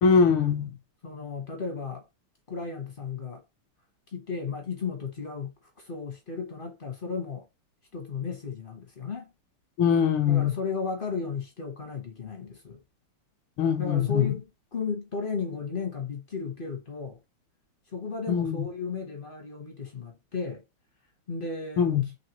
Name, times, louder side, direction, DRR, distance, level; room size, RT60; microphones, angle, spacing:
voice 1, 0.0-0.7 9.8-10.5 13.6-14.3 18.3-18.6 21.8-22.0, left 7 dB, 85° left, 1.7 m, -22 dB
voice 2, 1.0-2.1 2.5-3.4 4.1-7.5 7.9-9.3 10.3-12.8 13.8-17.2 17.9-20.6 21.3-22.0, left 4 dB, 55° left, 0.6 m, -34 dB
4.2 x 3.2 x 2.9 m
omnidirectional pair, 2.3 m